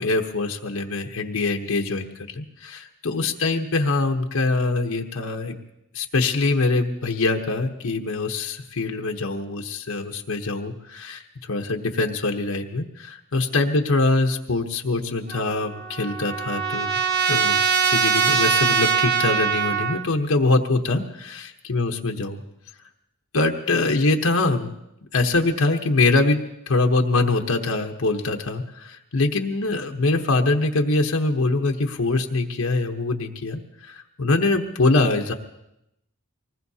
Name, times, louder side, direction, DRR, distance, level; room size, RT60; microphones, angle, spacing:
voice 1, 0.0-2.1 2.3-5.5 5.9-11.2 11.5-17.0 17.3-17.6 17.9-22.4 23.3-24.7 25.1-26.4 26.7-35.3, left 3 dB, 75° left, 2 dB, 1.0 m, -23 dB
Trumpet, 15.3-20.0, right 6 dB, 50° right, 1.2 m, -22 dB
24.5 x 20.0 x 2.8 m, 0.83 s
head